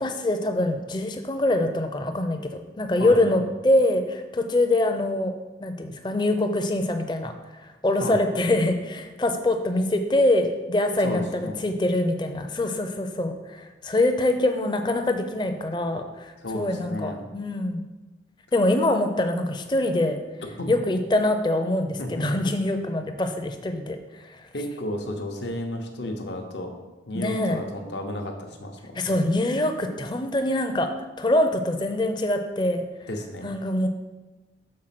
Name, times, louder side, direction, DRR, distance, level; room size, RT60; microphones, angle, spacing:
voice 1, 0.0-5.3 5.6-17.8 18.5-20.2 20.7-24.0 24.2-24.4 27.1-27.6 28.9-30.9 31.2-32.8 33.4-33.9, left 1 dB, 25° left, 6 dB, 0.5 m, -24 dB
voice 2, 3.0-3.4 8.0-8.4 11.0-11.7 16.4-17.2 20.6-20.7 22.0-22.1 24.5-26.7 27.1-29.2 33.1-33.5, left 1 dB, 75° left, 4 dB, 0.8 m, -33 dB
6.5 x 4.0 x 5.9 m, 1.2 s
head